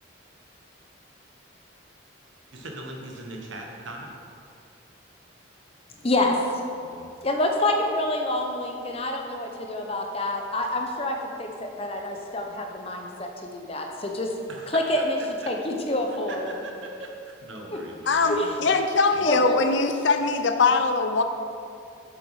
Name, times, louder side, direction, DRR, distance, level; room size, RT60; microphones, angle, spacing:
voice 1, 2.5-4.2 6.8-7.1 14.5-15.5 16.3-18.8 19.1-19.5, right 2 dB, 70° right, 1 dB, 1.2 m, -40 dB
voice 2, 6.0-6.4 7.2-14.3 14.7-15.2 15.5-16.5 17.7-17.8 18.3-18.5 19.2-19.6, left 1 dB, 30° left, 2 dB, 0.8 m, -27 dB
voice 3, 18.1-21.2, left 4 dB, 65° left, 7 dB, 0.6 m, -22 dB
7.8 x 7.0 x 4.8 m, 2.4 s
head